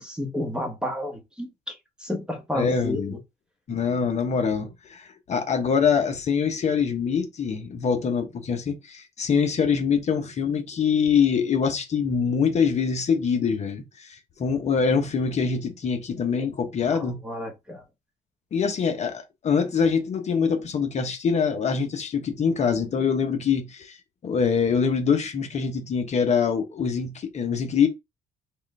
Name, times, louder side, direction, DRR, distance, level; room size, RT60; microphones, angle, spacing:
voice 1, 0.0-1.7 2.0-3.2 16.4-16.5 16.9-17.8, left 1 dB, 5° right, 1.2 m, -31 dB
voice 2, 2.5-3.2 3.7-17.2 18.5-24.0 24.2-27.9, left 6 dB, 40° left, 0.9 m, -24 dB
3.6 x 2.4 x 3.3 m
cardioid pair, 110°, 17 cm